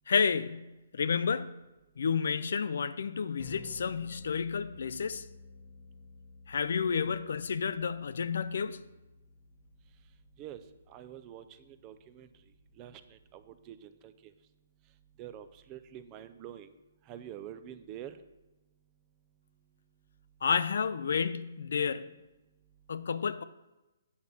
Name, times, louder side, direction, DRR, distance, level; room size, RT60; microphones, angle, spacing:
voice 1, 0.1-0.7 0.9-1.5 2.0-5.3 6.5-8.8 20.4-22.1 22.9-23.4, left 6 dB, 60° left, 0.4 m, -30 dB
sound 1, 3.4-13.4, left 4 dB, 20° left, 0.8 m, -54 dB
voice 2, 10.9-12.3 12.8-13.0 13.3-13.4 13.7-13.8 14.0-14.1 15.2-16.7 17.1-18.2, right 11 dB, 15° right, 0.3 m, -46 dB
8.5 x 7.3 x 4.0 m
hypercardioid pair, 175°, 0 cm